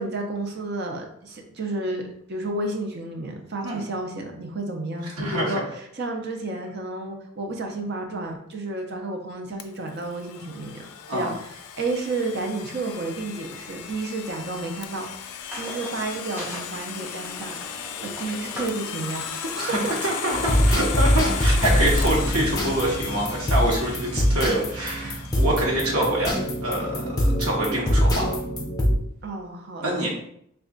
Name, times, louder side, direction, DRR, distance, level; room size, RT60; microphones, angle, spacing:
voice 1, 0.0-2.0 2.3-11.3 11.8-15.1 15.6-17.5 18.0-19.6 25.0-25.2 29.2-30.1, right 2 dB, 50° right, 2 dB, 0.6 m, -31 dB
voice 2, 5.2-5.6 11.1-11.3 19.6-26.3 26.6-28.4 29.8-30.1, right 1 dB, 80° right, -3 dB, 1.0 m, -25 dB
Domestic sounds home sounds, 9.6-26.4, left 8 dB, 85° left, 0.3 m, -37 dB
sound 1, 15.5-22.9, equal, 10° right, 0.8 m, -39 dB
sound 2, 20.3-28.9, equal, 15° left, 0.5 m, -23 dB
3.3 x 2.3 x 3.8 m, 0.71 s
head